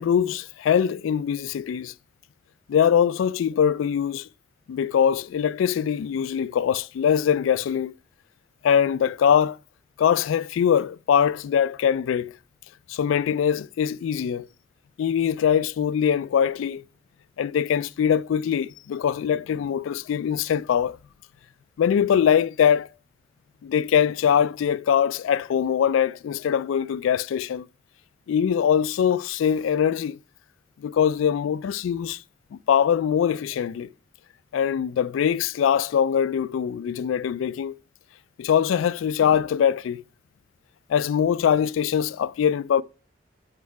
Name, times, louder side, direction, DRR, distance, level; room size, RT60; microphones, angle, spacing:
voice 1, 0.0-1.9 2.7-4.3 4.7-7.9 8.6-9.6 10.0-12.3 12.9-14.5 15.0-16.8 17.4-21.0 21.8-22.9 23.6-27.7 28.3-30.2 30.8-32.2 32.7-33.9 34.5-37.8 38.4-40.0 40.9-42.8, left 8 dB, 90° left, 0.3 m, -22 dB
6.4 x 5.7 x 4.6 m
head